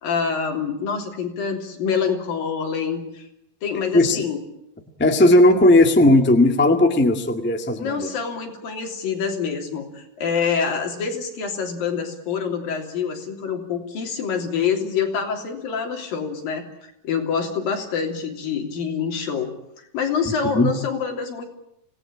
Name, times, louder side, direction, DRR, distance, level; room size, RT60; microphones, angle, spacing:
voice 1, 0.0-3.3 3.6-4.4 7.8-19.5 19.9-21.4, left 6 dB, 85° left, 3 dB, 5.0 m, -26 dB
voice 2, 3.9-4.3 5.0-8.1 20.4-20.7, left 1 dB, 5° left, 5 dB, 1.0 m, -16 dB
26.0 x 18.0 x 8.8 m, 0.80 s
omnidirectional pair, 4.0 m